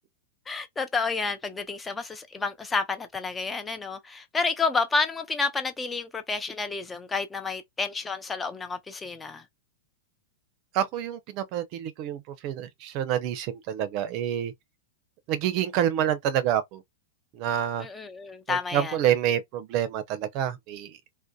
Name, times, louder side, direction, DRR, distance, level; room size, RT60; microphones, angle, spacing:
voice 1, 0.5-9.4 17.8-19.0, left 4 dB, 15° left, 0.4 m, -30 dB
voice 2, 10.7-14.5 15.3-16.8 17.3-17.9 18.5-21.0, right 10 dB, 45° right, 0.6 m, -27 dB
2.6 x 2.1 x 2.2 m
hypercardioid pair, 125°, 0 cm